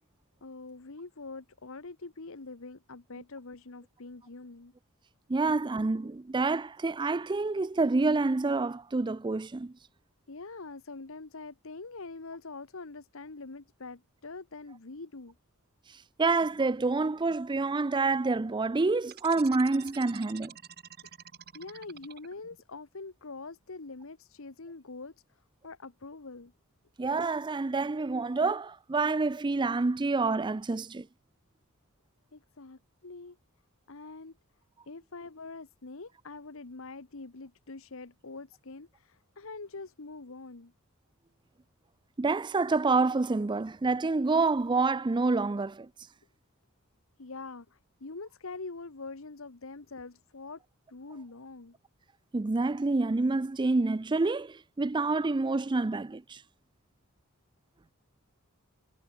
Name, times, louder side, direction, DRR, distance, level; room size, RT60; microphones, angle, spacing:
voice 1, 0.4-4.7 10.3-15.3 21.5-25.1 25.6-26.5 32.3-33.4 33.9-34.4 34.9-40.7 47.2-50.6 50.9-51.8, left 3 dB, 65° left, 1.2 m, -44 dB
voice 2, 5.3-9.7 15.9-20.5 27.0-31.1 42.2-45.9 52.3-56.4, right 3 dB, 20° right, 0.4 m, -28 dB
sound 1, 19.0-22.6, right 9 dB, 45° right, 1.8 m, -48 dB
head